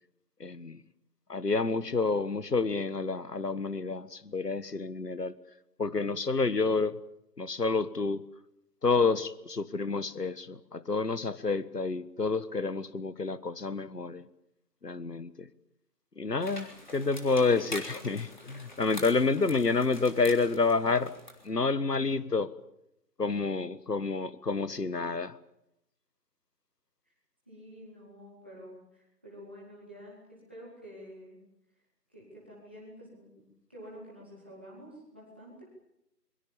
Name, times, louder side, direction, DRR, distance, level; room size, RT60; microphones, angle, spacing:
voice 1, 0.4-0.8 1.3-5.3 5.8-6.9 7.4-8.2 8.8-14.2 14.8-15.5 16.2-21.1 21.4-22.5 23.2-25.4, left 4 dB, 70° left, 16 dB, 1.6 m, -29 dB
sound 1, 16.4-21.5, left 1 dB, 25° left, 3.5 m, -45 dB
voice 2, 27.5-31.4 32.1-35.6, equal, 5° right, -6 dB, 2.3 m, -49 dB
26.5 x 22.5 x 7.2 m, 0.82 s
figure-of-eight pair, 175°, 50 cm